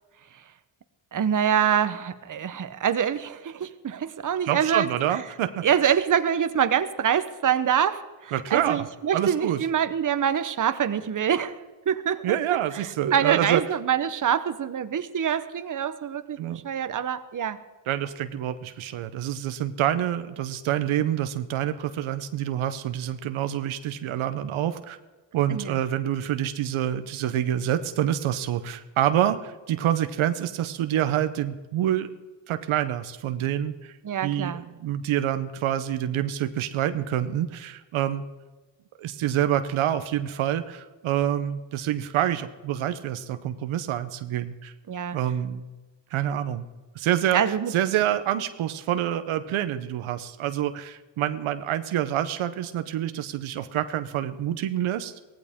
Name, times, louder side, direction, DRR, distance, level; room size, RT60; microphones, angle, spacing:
voice 1, 1.1-5.2 5.6-11.6 11.9-12.4 12.7-17.6 25.5-25.7 34.0-34.6 44.9-45.2 47.3-47.7, right 8 dB, 40° right, 11 dB, 0.9 m, -25 dB
voice 2, 4.4-5.6 8.3-8.9 9.1-9.6 12.2-13.6 16.4-16.6 17.9-25.0 25.3-32.1 32.5-34.0 34.2-38.2 39.0-44.7 45.1-45.6 46.1-46.7 47.0-47.4 47.7-55.1, right 11 dB, 80° right, 10 dB, 0.9 m, -27 dB
17.0 x 15.0 x 3.6 m, 1.2 s
cardioid pair, 70°, 48 cm